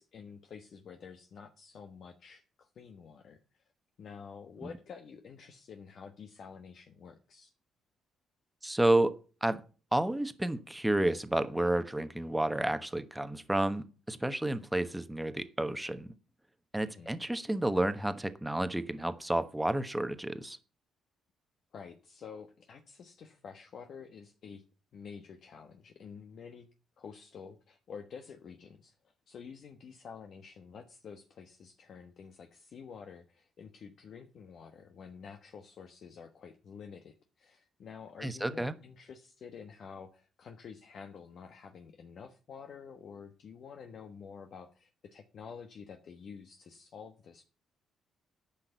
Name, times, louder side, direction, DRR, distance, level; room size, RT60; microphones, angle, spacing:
voice 1, 0.0-3.6 4.0-7.5 16.8-17.3 21.7-24.6 24.9-26.7 27.0-28.9 29.3-47.4, left 6 dB, 60° left, 1.2 m, -49 dB
voice 2, 8.6-9.1 9.4-9.6 9.9-16.1 16.7-20.6 38.2-38.8, right 1 dB, 10° right, 1.1 m, -30 dB
10.0 x 5.8 x 8.1 m
cardioid pair, 90°, 0 cm